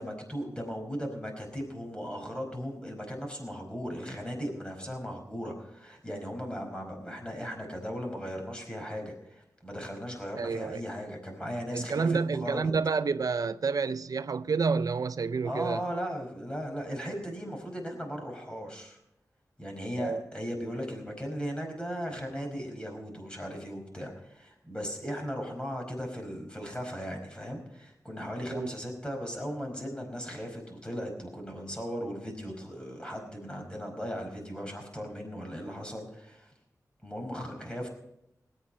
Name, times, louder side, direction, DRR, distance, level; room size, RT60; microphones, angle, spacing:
voice 1, 0.0-12.7 15.4-19.0 19.6-36.5 37.0-37.9, equal, 15° left, 4.9 m, -37 dB
voice 2, 10.4-10.8 11.7-15.8 20.0-20.2 28.5-28.7, right 5 dB, 65° right, 0.4 m, -29 dB
19.0 x 8.8 x 5.4 m
wide cardioid pair, 60°, 7 cm